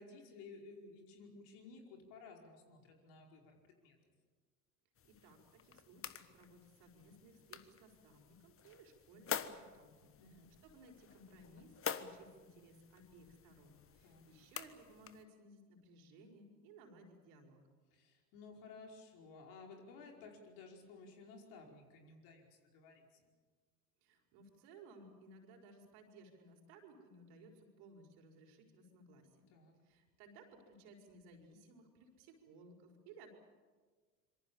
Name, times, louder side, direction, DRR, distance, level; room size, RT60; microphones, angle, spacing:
voice 1, 0.0-4.0 10.2-10.5 14.0-14.3 17.9-23.3 29.5-29.7, left 4 dB, 60° left, 1 dB, 5.3 m, -56 dB
sound 1, 5.0-15.2, left 8 dB, 30° left, 1.4 m, -48 dB
voice 2, 5.0-10.1 10.6-17.6 24.0-29.5 29.8-33.3, right 2 dB, 60° right, 2 dB, 5.3 m, -60 dB
26.0 x 23.5 x 7.3 m, 1.5 s
hypercardioid pair, 80°, 46 cm